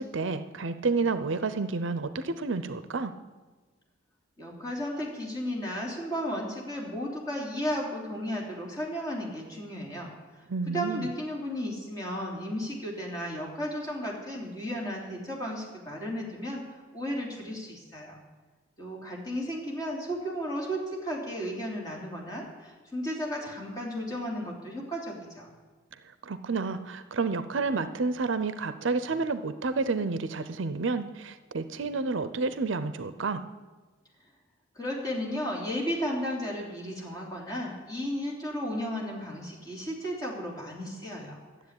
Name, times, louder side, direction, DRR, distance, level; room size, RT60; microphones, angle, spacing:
voice 1, 0.0-3.1 10.5-11.1 26.2-33.4, right 4 dB, 65° right, 12 dB, 0.6 m, -30 dB
voice 2, 4.4-10.1 10.7-16.6 16.9-18.2 18.8-25.5 34.7-41.4, equal, 20° left, -2 dB, 3.2 m, -34 dB
13.0 x 7.7 x 9.7 m, 1.3 s
head